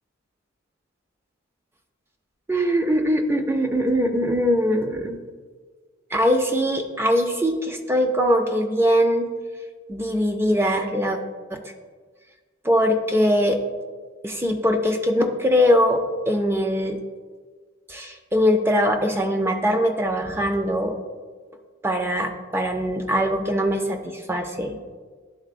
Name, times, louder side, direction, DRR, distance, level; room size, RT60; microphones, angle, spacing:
voice 1, 2.5-5.2 6.1-9.3 9.9-11.2 11.5-11.6 12.7-13.6 14.2-17.0 17.9-21.0 21.8-24.7, equal, 10° right, 4 dB, 0.4 m, -22 dB
10.5 x 4.0 x 2.5 m, 1.5 s
head